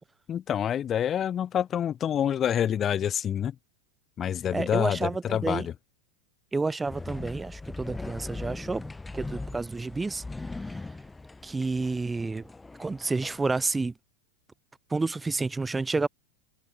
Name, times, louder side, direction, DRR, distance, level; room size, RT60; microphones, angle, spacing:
voice 1, 0.3-3.5 4.2-5.7, left 9 dB, 25° left, 0.6 m, -27 dB
voice 2, 4.5-5.7 6.5-10.2 10.7-10.8 11.4-12.5 12.8-13.9 14.9-16.1, right 3 dB, 10° right, 0.9 m, -30 dB
sound 1, 6.9-13.7, left 3 dB, 10° left, 4.3 m, -40 dB
figure-of-eight pair, 90°, 0 cm